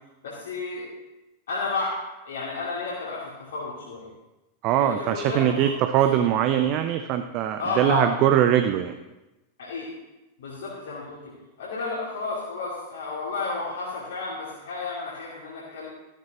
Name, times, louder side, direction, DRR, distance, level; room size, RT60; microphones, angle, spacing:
voice 1, 0.2-0.9 1.5-4.1 4.8-5.7 7.6-8.3 9.6-9.9 10.4-11.3 11.6-15.9, left 3 dB, 65° left, -6 dB, 2.5 m, -32 dB
voice 2, 4.6-8.9, right 10 dB, 40° right, 8 dB, 0.6 m, -22 dB
13.5 x 13.0 x 3.1 m, 1.0 s
figure-of-eight pair, 90°, 0 cm